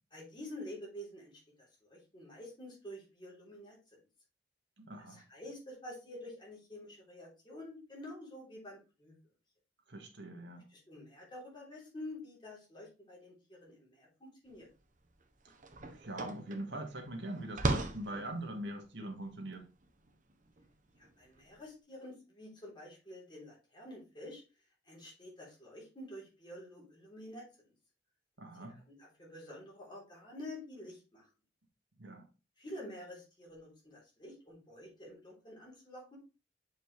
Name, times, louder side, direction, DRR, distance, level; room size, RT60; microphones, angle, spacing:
voice 1, 0.1-1.4 1.9-3.8 5.1-9.2 10.7-14.7 21.0-24.4 24.9-27.7 28.7-31.3 32.6-36.2, left 1 dB, 25° left, 3.5 m, -49 dB
voice 2, 4.8-5.2 9.9-10.7 15.8-19.7 28.4-28.8 32.0-32.2, right 1 dB, 70° right, 1.7 m, -42 dB
sound 1, 14.6-14.7 15.1-21.5, right 2 dB, 45° right, 1.0 m, -39 dB
7.0 x 5.1 x 3.2 m
head